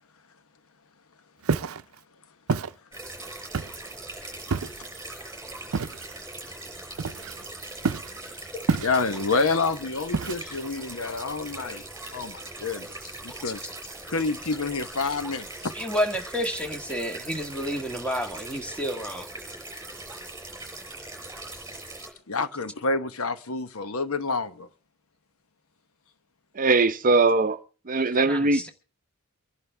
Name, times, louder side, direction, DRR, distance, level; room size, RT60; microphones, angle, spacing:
Walk footsteps, 1.4-1.8 2.5-2.7 3.5-3.9 4.5-4.9 5.7-6.1 7.0-7.4 7.8-8.2 8.7-9.2 10.1-10.6, right 4 dB, 90° right, 0.6 m, -27 dB
sound 1, 2.9-22.1, right 2 dB, 15° right, 5.6 m, -40 dB
voice 1, 8.8-11.8 12.1-12.9 13.2-13.6 14.1-15.7 22.3-24.7, left 3 dB, 80° left, 1.0 m, -28 dB
voice 2, 15.7-19.3 28.2-28.7, equal, 5° left, 1.6 m, -30 dB
voice 3, 26.6-27.6 27.9-28.7, right 3 dB, 40° right, 0.7 m, -21 dB
25.0 x 11.0 x 3.4 m
head